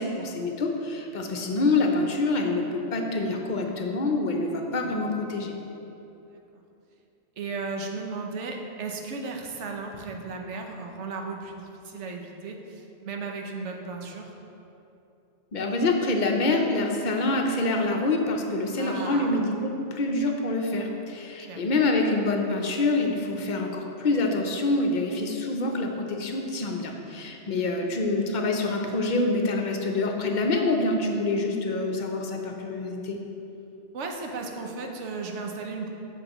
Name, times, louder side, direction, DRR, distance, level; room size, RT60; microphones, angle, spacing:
voice 1, 0.0-5.5 15.5-33.2, left 2 dB, 50° left, 2 dB, 0.7 m, -26 dB
voice 2, 6.3-6.6 7.4-14.3 18.7-19.3 21.4-21.6 27.5-27.7 33.9-35.9, right 4 dB, 80° right, 2 dB, 1.1 m, -35 dB
7.6 x 6.9 x 3.0 m, 2.9 s
omnidirectional pair, 1.2 m